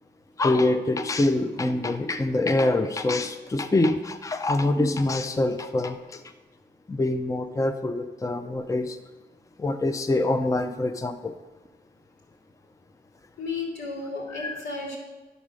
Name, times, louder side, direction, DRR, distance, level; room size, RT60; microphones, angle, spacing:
voice 1, 0.4-6.2 6.9-9.0 9.6-11.3 14.3-14.6, left 2 dB, 15° left, 8 dB, 0.5 m, -25 dB
voice 2, 13.4-15.0, left 3 dB, 90° left, -2 dB, 3.0 m, -33 dB
11.0 x 4.1 x 6.2 m, 1.2 s
wide cardioid pair, 75°, 19 cm